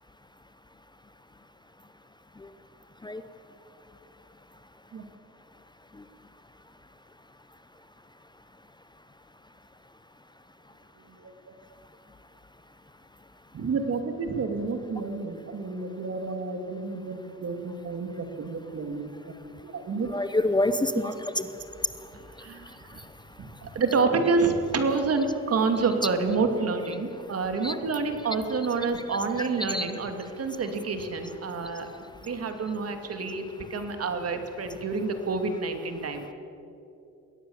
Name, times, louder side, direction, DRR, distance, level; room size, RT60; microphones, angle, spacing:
voice 1, 13.5-19.1 19.4-20.1 21.0-21.1 22.4-23.0 23.4-31.9 32.2-36.3, right 4 dB, 50° right, 7 dB, 2.6 m, -29 dB
voice 2, 20.0-21.5 27.6-27.8 28.9-29.9, left 1 dB, 15° left, 11 dB, 0.9 m, -28 dB
22.0 x 17.0 x 7.3 m, 2.8 s
cardioid pair, 90°, 30 cm